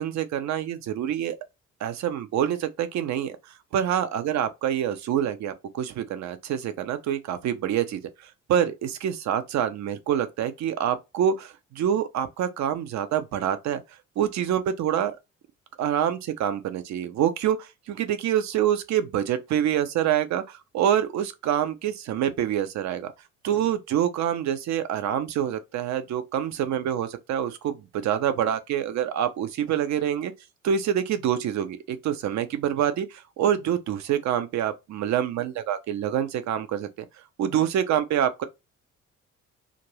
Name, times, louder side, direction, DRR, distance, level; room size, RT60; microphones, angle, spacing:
voice 1, 0.0-1.4 1.8-3.4 3.7-13.8 14.2-15.1 15.8-23.1 23.4-30.3 30.6-36.9 37.4-38.4, right 10 dB, 45° right, 0.6 m, -26 dB
2.5 x 2.5 x 3.1 m
figure-of-eight pair, 45°, 38 cm